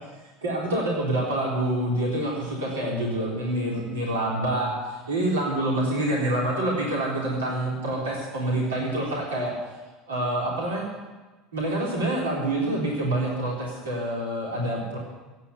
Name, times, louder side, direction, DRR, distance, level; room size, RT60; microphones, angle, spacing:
voice 1, 0.4-9.6 10.1-10.9 11.5-15.0, right 1 dB, 80° right, -3 dB, 3.7 m, -27 dB
15.5 x 8.6 x 9.5 m, 1.2 s
figure-of-eight pair, 75°, 0 cm